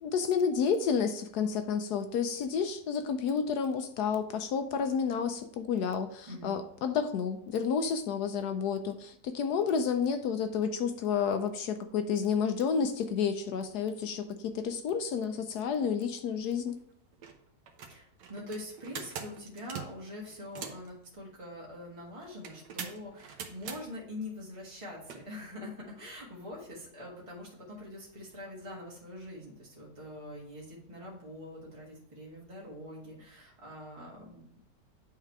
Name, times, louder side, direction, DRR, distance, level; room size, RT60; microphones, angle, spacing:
voice 1, 0.0-16.7, left 6 dB, 75° left, 8 dB, 1.1 m, -30 dB
sound 1, 16.7-16.8 17.1-17.3 17.7-20.9 22.4-23.8 25.0-25.2, right 7 dB, 80° right, 1.5 m, -42 dB
voice 2, 17.9-34.6, left 1 dB, 20° right, -4 dB, 1.6 m, -44 dB
9.0 x 3.7 x 4.6 m, 0.69 s
omnidirectional pair, 1.9 m